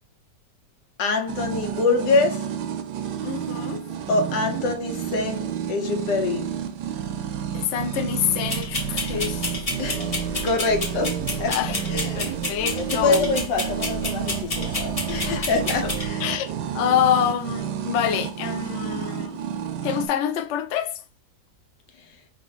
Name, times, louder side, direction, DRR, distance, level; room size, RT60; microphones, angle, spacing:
voice 1, 1.0-2.5 4.1-6.5 9.8-10.1 10.4-11.6 11.9-12.3 12.8-16.4, left 3 dB, 90° left, 1.5 m, -25 dB
sound 1, 1.3-20.1, right 9 dB, 80° right, 1.2 m, -30 dB
voice 2, 3.2-3.8 7.5-9.5 11.5-11.8 12.2-13.3 15.2-15.5 15.8-15.9 16.2-19.4 19.8-21.0, left 10 dB, 65° left, 0.7 m, -26 dB
sound 2, 8.5-16.1, left 2 dB, 25° left, 0.9 m, -31 dB
5.2 x 2.9 x 3.3 m
omnidirectional pair, 1.8 m